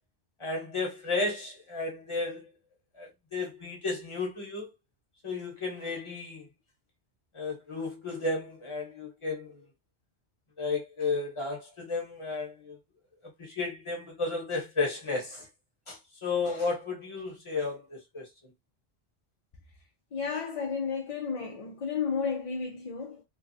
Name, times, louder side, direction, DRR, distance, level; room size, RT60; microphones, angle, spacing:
voice 1, 0.4-2.5 2.9-4.7 5.2-6.5 7.3-9.6 10.6-12.8 13.4-15.5 15.9-18.5, left 3 dB, 30° left, 1.0 m, -33 dB
voice 2, 20.1-23.2, left 5 dB, 50° left, 0.4 m, -32 dB
3.0 x 2.3 x 2.6 m
omnidirectional pair, 1.1 m